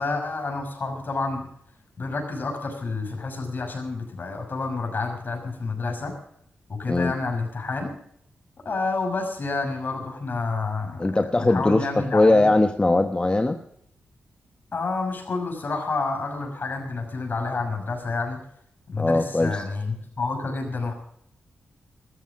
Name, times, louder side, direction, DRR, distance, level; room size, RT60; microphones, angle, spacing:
voice 1, 0.0-1.5 2.0-6.1 6.7-7.9 8.6-11.1 11.4-12.5 14.7-18.4 18.9-20.9, left 3 dB, 55° left, 3 dB, 6.2 m, -29 dB
voice 2, 11.0-11.9 12.1-13.6 19.0-19.7, left 2 dB, 25° left, 7 dB, 1.1 m, -20 dB
14.0 x 13.5 x 6.2 m, 0.69 s
cardioid pair, 50°, 4 cm